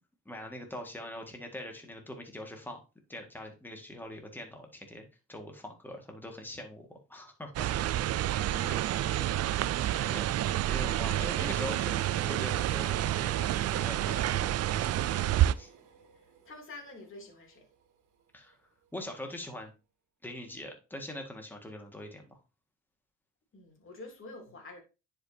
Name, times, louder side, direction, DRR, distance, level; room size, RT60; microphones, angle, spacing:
voice 1, 0.3-2.8 3.1-7.7 8.6-8.8 10.0-15.1 15.5-15.7 18.3-18.6 18.9-19.7 20.2-22.4, left 1 dB, 5° left, 1.8 m, -43 dB
sound 1, 7.6-15.5, right 13 dB, 55° right, 0.4 m, -29 dB
voice 2, 8.2-9.6 9.9-10.2 16.1-17.7 23.5-24.8, left 2 dB, 45° left, 2.8 m, -48 dB
Train, 8.8-17.8 18.2-18.3, right 7 dB, 75° right, 1.6 m, -49 dB
10.0 x 5.1 x 2.7 m
cardioid pair, 90°, 30 cm